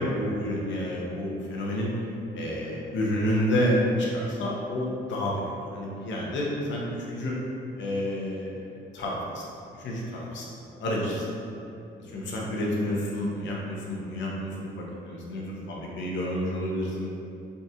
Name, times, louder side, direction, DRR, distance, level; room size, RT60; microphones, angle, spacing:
voice 1, 0.0-1.9 2.3-5.4 5.7-7.3 7.8-8.6 8.9-9.4 9.8-11.3 12.0-17.1, equal, 70° left, -3 dB, 0.7 m, -29 dB
3.6 x 2.4 x 2.8 m, 2.7 s
cardioid pair, 90°, 20 cm